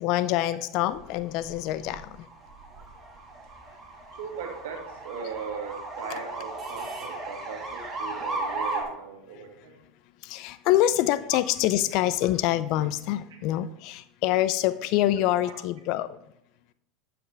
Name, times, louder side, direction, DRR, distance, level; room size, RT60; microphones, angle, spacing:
voice 1, 0.0-2.3 10.2-16.2, left 14 dB, 60° left, 14 dB, 0.5 m, -25 dB
sound 1, 0.9-8.8, right 2 dB, 25° right, 2.9 m, -36 dB
voice 2, 4.1-9.8 15.4-15.6, right 6 dB, 75° right, 3 dB, 1.8 m, -39 dB
11.0 x 6.0 x 3.4 m, 0.76 s
hypercardioid pair, 90°, 0 cm